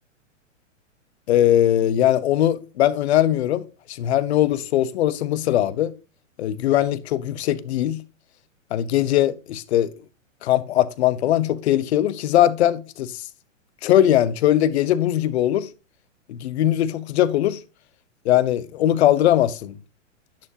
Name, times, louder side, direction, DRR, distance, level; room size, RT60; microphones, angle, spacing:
voice 1, 1.3-3.6 3.9-5.9 6.4-8.0 8.7-9.9 10.4-13.2 13.8-15.7 16.3-17.6 18.2-19.8, left 12 dB, 55° left, 1.0 m, -20 dB
11.0 x 7.1 x 2.8 m
hypercardioid pair, 145°, 39 cm